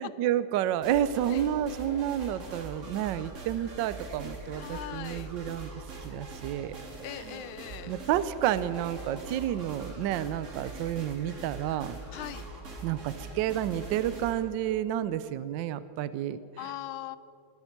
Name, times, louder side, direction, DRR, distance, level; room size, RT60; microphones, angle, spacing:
voice 1, 0.0-5.7 6.0-6.7 7.9-12.0 12.8-16.7, right 11 dB, 75° right, 15 dB, 1.1 m, -30 dB
sound 1, 0.8-14.4, right 2 dB, 35° right, 1.9 m, -42 dB
voice 2, 4.6-5.3 7.0-7.9 12.1-12.5 16.6-17.2, left 15 dB, 75° left, 16 dB, 1.3 m, -40 dB
17.5 x 13.0 x 5.8 m, 2.7 s
omnidirectional pair, 2.4 m